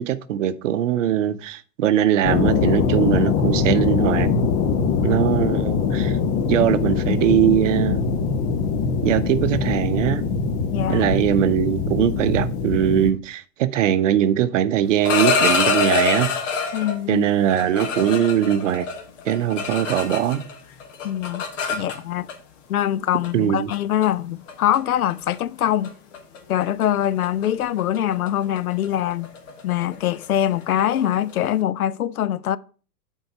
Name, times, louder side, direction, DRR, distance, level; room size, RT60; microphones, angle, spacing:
voice 1, 0.0-4.3 5.0-6.2 6.5-8.0 9.0-10.2 10.9-16.3 17.1-18.9 19.2-20.4 23.3-23.7, right 11 dB, 50° right, 0.7 m, -21 dB
sound 1, 2.2-13.1, left 5 dB, 30° left, 0.9 m, -22 dB
voice 2, 10.7-11.1 16.7-17.3 21.0-21.4 21.7-22.3 22.7-25.9 26.5-29.3 29.6-32.6, left 11 dB, 70° left, 0.6 m, -23 dB
sound 2, 14.9-17.0 17.5-20.5 20.8-22.3 23.2-23.4 23.7-24.1 24.5-24.8 25.1-25.3 25.6-25.9 26.1-31.5, left 5 dB, 50° left, 1.4 m, -25 dB
7.7 x 4.7 x 5.8 m
figure-of-eight pair, 110°, 47 cm